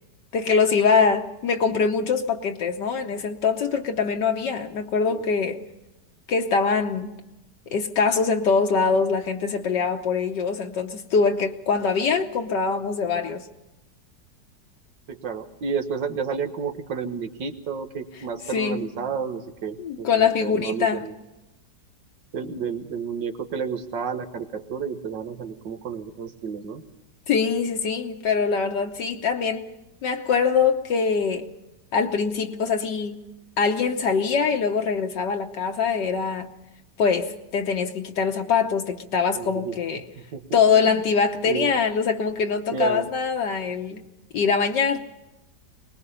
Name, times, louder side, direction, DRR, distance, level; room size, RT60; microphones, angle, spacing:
voice 1, 0.3-5.6 6.3-7.1 7.7-13.4 18.5-18.9 19.8-21.0 27.3-29.7 30.0-31.5 31.9-33.2 33.6-36.5 37.0-40.1 40.5-44.0 44.3-45.1, left 5 dB, 75° left, 3 dB, 1.6 m, -23 dB
voice 2, 15.1-21.1 22.3-26.8 39.4-39.8 40.3-40.9 41.5-41.7 42.7-43.1, right 6 dB, 80° right, 7 dB, 2.0 m, -31 dB
23.5 x 20.0 x 5.6 m, 0.98 s
omnidirectional pair, 1.9 m